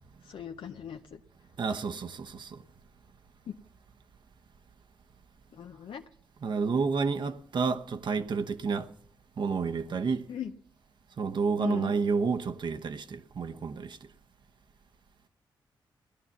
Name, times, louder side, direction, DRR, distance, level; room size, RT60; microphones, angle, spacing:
voice 1, 0.2-1.2 3.5-3.6 5.5-6.0 10.3-10.5 11.6-11.9, left 8 dB, 75° left, 0.7 m, -39 dB
voice 2, 1.6-2.6 6.4-8.9 9.4-10.3 11.2-14.0, right 5 dB, 60° right, 1.0 m, -30 dB
17.0 x 10.5 x 7.1 m
cardioid pair, 65°, 9 cm